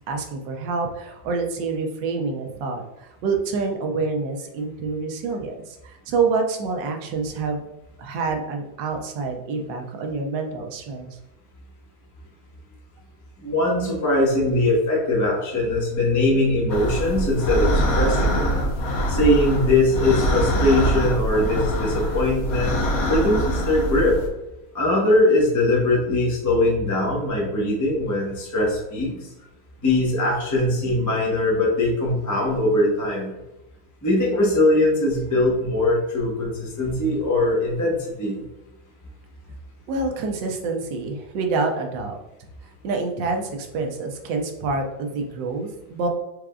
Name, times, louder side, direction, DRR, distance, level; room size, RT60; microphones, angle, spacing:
voice 1, 0.1-7.7 8.0-11.2 39.9-42.2 42.8-46.1, right 4 dB, 70° right, 3 dB, 1.3 m, -27 dB
voice 2, 13.4-18.5 19.1-22.8 23.1-24.2 24.7-29.1 29.8-33.3 34.0-38.4, left 1 dB, 15° left, -4 dB, 0.7 m, -21 dB
sound 1, 16.7-24.3, right 1 dB, 60° left, 1.1 m, -24 dB
4.9 x 3.8 x 2.4 m, 0.96 s
omnidirectional pair, 2.1 m